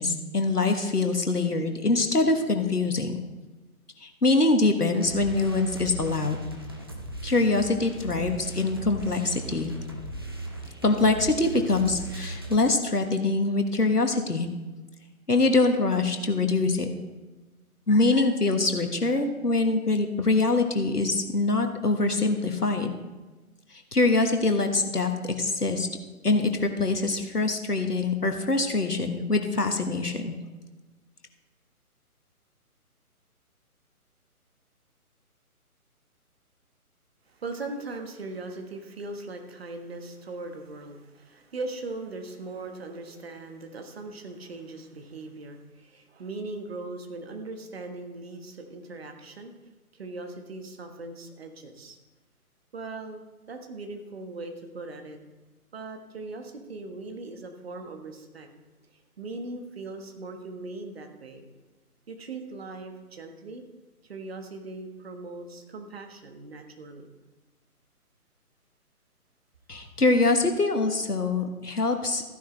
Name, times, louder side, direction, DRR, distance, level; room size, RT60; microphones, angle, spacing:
voice 1, 0.0-3.1 4.0-6.4 7.2-9.7 10.8-14.5 15.3-16.9 17.9-22.9 23.9-25.1 25.4-25.9 26.2-30.3 69.7-72.2, left 3 dB, 90° left, 5 dB, 1.4 m, -24 dB
sound 1, 4.9-12.6, right 1 dB, 15° right, 0.6 m, -38 dB
voice 2, 37.3-49.5 49.9-52.0 52.7-55.2 55.7-58.5 58.9-61.4 62.1-63.6 64.0-67.1, right 3 dB, 40° right, 5 dB, 1.5 m, -39 dB
14.0 x 10.5 x 3.3 m, 1.2 s
figure-of-eight pair, 145°, 45 cm